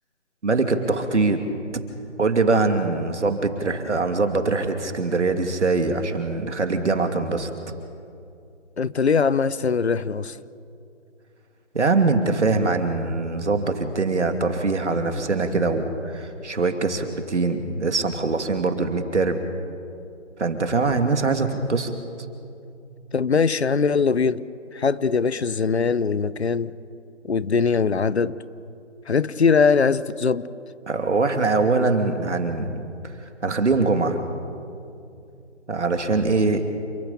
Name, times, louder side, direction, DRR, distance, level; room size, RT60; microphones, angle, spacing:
voice 1, 0.4-1.4 2.2-7.5 11.7-19.4 20.4-21.9 30.9-32.8 33.4-34.2 35.7-36.7, right 3 dB, 70° right, 2.8 m, -22 dB
voice 2, 8.8-10.4 23.1-24.4 24.7-26.7 27.3-28.4 29.1-30.5, left 5 dB, 60° left, 0.9 m, -21 dB
28.5 x 15.0 x 8.5 m
figure-of-eight pair, 170°, 37 cm